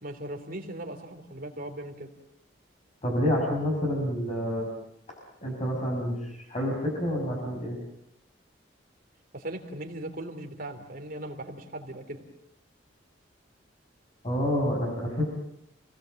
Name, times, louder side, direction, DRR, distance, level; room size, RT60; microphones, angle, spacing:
voice 1, 0.0-2.1 9.3-12.2, right 1 dB, 50° right, 5 dB, 3.3 m, -38 dB
voice 2, 3.0-4.7 5.4-7.8 14.2-15.2, equal, 35° left, -1 dB, 5.8 m, -28 dB
29.0 x 19.0 x 7.8 m, 0.79 s
head